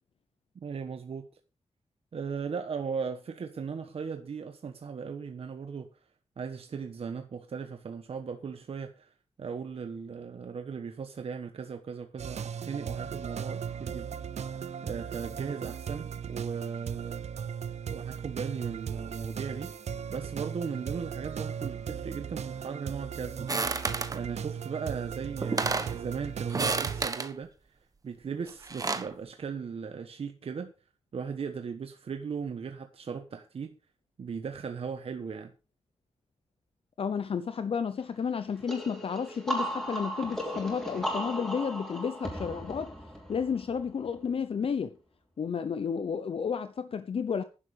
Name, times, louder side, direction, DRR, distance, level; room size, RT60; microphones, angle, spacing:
voice 1, 0.6-1.3 2.1-6.0 6.4-14.2 14.8-17.2 17.9-19.7 20.1-23.5 24.1-27.8 28.0-30.7 31.1-33.7 34.2-35.5, right 6 dB, 60° right, 1.2 m, -37 dB
sound 1, 12.2-27.1, right 7 dB, 75° right, 0.8 m, -37 dB
sound 2, 23.5-24.2 25.1-25.2 25.4-26.0 26.5-27.3 28.5-29.1, right 3 dB, 30° right, 1.3 m, -30 dB
voice 2, 37.0-42.9 43.3-45.0 45.4-47.4, left 6 dB, 55° left, 0.8 m, -32 dB
sound 3, 38.7-44.2, equal, 5° left, 4.7 m, -36 dB
11.0 x 11.0 x 5.0 m
wide cardioid pair, 170°, 11 cm